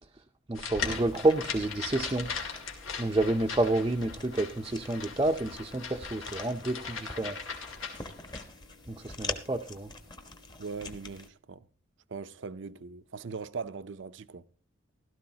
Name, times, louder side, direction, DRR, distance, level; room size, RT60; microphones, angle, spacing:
sound 1, 0.5-8.4, left 5 dB, 85° left, 2.4 m, -39 dB
voice 1, 0.5-2.3 3.0-7.4 8.9-9.9, right 2 dB, 20° right, 0.5 m, -29 dB
sound 2, 0.8-11.3, left 3 dB, 20° left, 1.0 m, -45 dB
voice 2, 10.6-11.6 12.1-14.4, right 5 dB, 65° right, 0.6 m, -40 dB
15.5 x 13.0 x 2.8 m
head